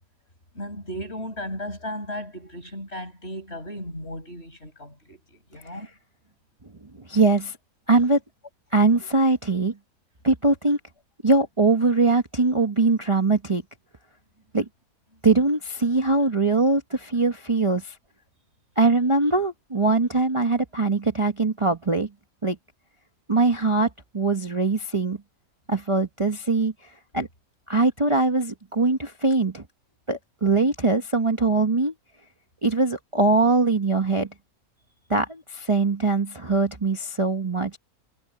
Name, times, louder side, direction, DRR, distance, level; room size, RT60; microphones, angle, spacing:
voice 1, 0.5-5.9, equal, 45° left, 8.2 m, -35 dB
voice 2, 6.9-7.6 7.9-8.2 8.7-9.7 10.2-10.8 11.2-13.6 14.5-14.7 15.2-18.0 18.8-22.1 22.4-22.6 23.3-23.9 24.1-25.2 25.7-27.3 27.7-29.6 30.1-31.9 32.6-34.3 35.1-37.8, right 3 dB, 25° right, 1.2 m, -22 dB
omnidirectional pair, 1.5 m